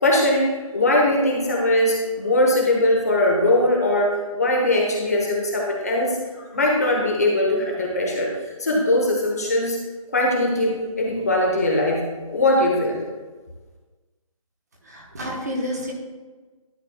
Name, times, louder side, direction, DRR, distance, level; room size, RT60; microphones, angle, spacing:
voice 1, 0.0-8.3 8.6-9.8 10.1-12.0 12.3-13.0, left 1 dB, 30° left, -1 dB, 1.0 m, -21 dB
voice 2, 14.8-15.9, equal, 30° right, -1 dB, 1.2 m, -29 dB
12.0 x 6.8 x 2.3 m, 1.3 s
hypercardioid pair, 180°, 18 cm